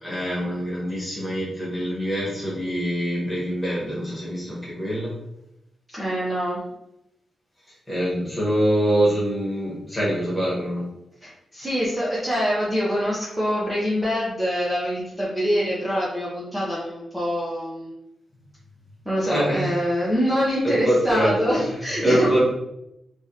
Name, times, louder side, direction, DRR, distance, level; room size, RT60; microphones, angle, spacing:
voice 1, 0.0-5.1 7.9-10.8 19.2-19.8 20.6-21.4 21.7-22.4, equal, 10° left, -6 dB, 1.4 m, -24 dB
voice 2, 5.9-6.6 11.2-17.9 19.0-22.4, equal, 10° right, -8 dB, 0.8 m, -25 dB
3.5 x 3.0 x 2.9 m, 0.83 s
wide cardioid pair, 155°, 0 cm